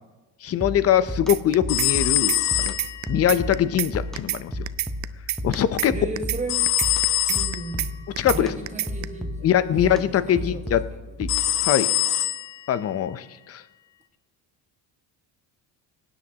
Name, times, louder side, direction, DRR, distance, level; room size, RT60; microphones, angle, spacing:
voice 1, 0.4-2.8 3.1-4.7 5.4-5.9 8.2-8.6 9.4-10.8 11.2-11.3 11.6-11.9 12.7-13.6, left 10 dB, 35° left, 15 dB, 0.6 m, -22 dB
sound 1, 0.6-11.7, left 1 dB, ahead, 0.9 m, -34 dB
sound 2, 1.3-1.9 2.2-2.4 2.7-3.9 4.2-4.4 4.7-5.9 6.2-6.4 6.7-7.9 8.2-8.4 8.7-9.0, right 14 dB, 45° right, 0.5 m, -27 dB
sound 3, 1.7-3.3 6.5-7.8 11.3-12.6, left 14 dB, 85° left, 1.1 m, -24 dB
voice 2, 5.9-6.6 7.3-8.0 8.2-11.2, right 2 dB, 15° right, 1 dB, 1.5 m, -35 dB
19.5 x 9.7 x 2.9 m, 1.2 s
cardioid pair, 115°, 40 cm